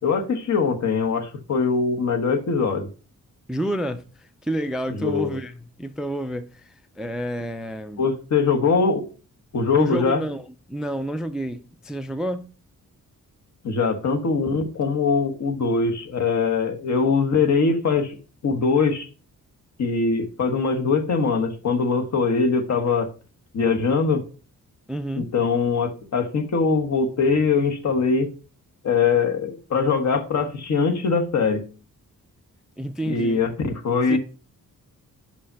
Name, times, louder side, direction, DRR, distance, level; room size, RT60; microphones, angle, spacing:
voice 1, 0.0-2.9 4.9-5.3 8.0-9.0 9.5-10.2 13.6-18.2 18.4-19.1 19.8-23.1 23.5-24.2 25.2-28.3 28.8-31.6 33.1-34.2, left 4 dB, 55° left, 1.3 m, -22 dB
voice 2, 3.5-8.1 9.8-12.5 24.9-25.3 32.8-33.4 34.1-34.2, right 1 dB, ahead, 0.3 m, -29 dB
5.7 x 5.3 x 5.5 m
wide cardioid pair, 170°, 33 cm